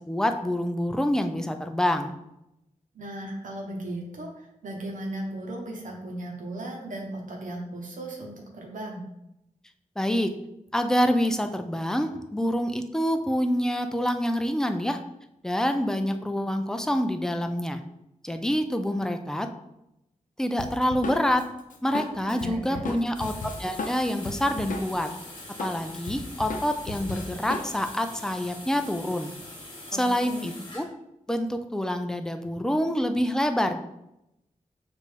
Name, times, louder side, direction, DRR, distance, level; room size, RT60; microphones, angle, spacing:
voice 1, 0.0-2.1 10.0-10.3 10.7-15.0 15.4-17.8 18.2-19.5 20.4-21.4 21.8-23.3 23.6-25.1 25.6-29.3 29.9-30.9 31.3-33.8, equal, 5° left, 7 dB, 0.3 m, -26 dB
voice 2, 2.9-9.0 22.0-22.8 29.9-30.5, right 1 dB, 75° right, -1 dB, 0.9 m, -36 dB
Drum kit, 20.6-25.1 25.4-27.9, left 2 dB, 80° left, 0.6 m, -35 dB
sound 1, 23.1-30.9, left 1 dB, 35° left, 1.2 m, -43 dB
6.4 x 2.6 x 3.2 m, 0.87 s
wide cardioid pair, 130°, 13 cm